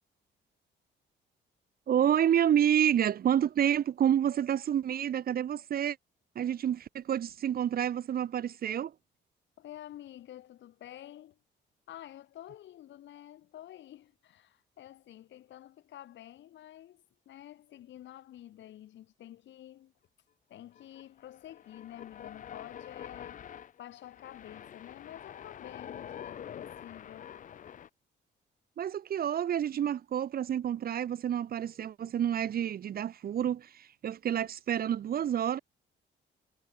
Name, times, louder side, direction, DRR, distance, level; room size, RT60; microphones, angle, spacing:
voice 1, 1.9-6.0 6.4-8.9 28.8-35.6, right 10 dB, 50° right, 0.6 m, -29 dB
voice 2, 9.6-11.4 11.9-19.9 20.5-23.5 23.8-27.3, left 12 dB, 70° left, 0.8 m, -49 dB
sound 1, 20.8-27.9, left 9 dB, 40° left, 0.5 m, -46 dB
cardioid pair, 90°, 20 cm